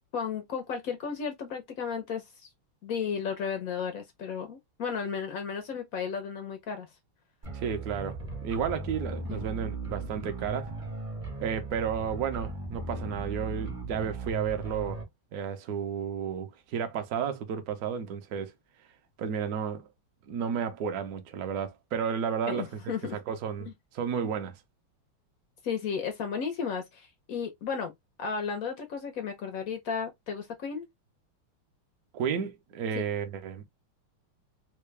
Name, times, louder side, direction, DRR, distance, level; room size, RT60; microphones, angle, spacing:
voice 1, 0.1-2.5 2.8-6.9 9.3-9.5 22.5-23.2 23.7-23.8 25.6-27.9 28.2-30.8 33.0-33.1, left 6 dB, 80° left, 0.7 m, -34 dB
sound 1, 7.4-15.0, right 3 dB, 35° right, 0.5 m, -37 dB
voice 2, 7.5-10.7 11.4-15.0 15.3-18.5 19.2-19.9 20.3-22.8 23.1-23.7 23.9-24.6 32.1-33.6, right 7 dB, 70° right, 0.9 m, -32 dB
3.7 x 2.3 x 3.2 m
omnidirectional pair, 2.4 m